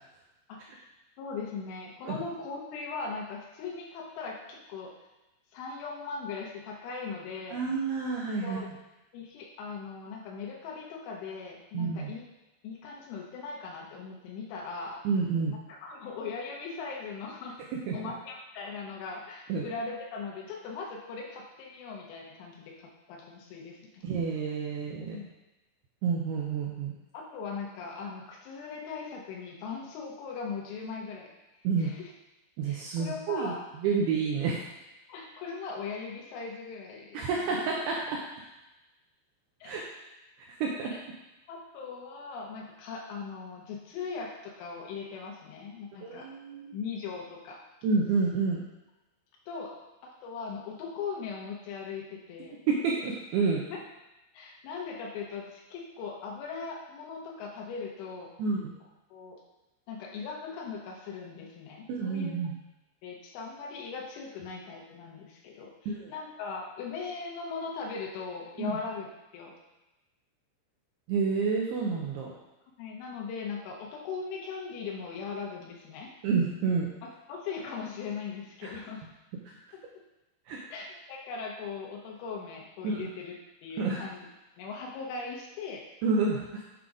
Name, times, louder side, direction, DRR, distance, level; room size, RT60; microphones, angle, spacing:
voice 1, 1.2-4.9 5.5-7.6 8.4-8.7 9.1-12.2 12.6-15.0 15.5-17.6 17.9-24.0 25.0-25.3 27.1-32.1 32.7-33.7 35.1-37.6 39.6-39.8 40.8-41.0 41.5-46.3 46.7-47.6 49.5-49.7 50.2-52.6 53.7-53.8 54.4-58.3 58.8-59.4 59.9-62.4 63.0-69.1 69.3-69.5 72.8-76.4 77.0-79.0 80.7-83.3 83.6-84.3 84.6-85.8, left 5 dB, 80° left, 0 dB, 3.4 m, -39 dB
voice 2, 7.5-8.6 11.7-12.2 15.0-15.5 17.9-18.0 19.5-19.6 24.0-25.2 26.0-26.9 31.6-31.9 32.6-33.5 33.8-34.6 37.1-38.2 39.6-39.8 40.6-40.9 46.0-46.8 47.8-48.6 52.7-53.6 58.4-58.7 61.9-62.6 65.9-66.1 68.6-68.8 71.1-72.3 76.2-76.9 78.6-78.7 79.5-79.6 80.5-80.6 82.8-83.1 83.8-84.0 86.0-86.6, right 5 dB, 85° right, -2 dB, 2.3 m, -29 dB
8.3 x 3.8 x 4.8 m, 1.0 s
omnidirectional pair, 5.5 m